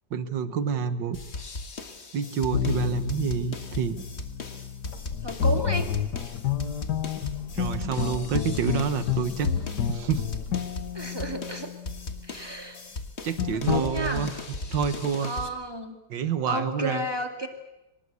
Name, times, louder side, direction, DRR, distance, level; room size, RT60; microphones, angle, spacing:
voice 1, 0.1-1.2 2.1-4.0 7.5-9.5 9.9-10.3 13.2-14.3 14.7-15.3 16.1-17.0, right 7 dB, 90° right, 12 dB, 2.0 m, -28 dB
sound 1, 1.1-15.5, left 3 dB, 40° left, 1.9 m, -38 dB
sound 2, 2.5-11.9 13.4-13.8, left 8 dB, 70° left, 1.8 m, -30 dB
voice 2, 5.2-5.9 10.9-11.7 12.2-12.8 13.5-14.3 15.2-15.9 16.4-17.5, right 1 dB, 15° right, 5 dB, 2.3 m, -32 dB
24.5 x 19.5 x 8.3 m, 0.95 s
omnidirectional pair, 1.9 m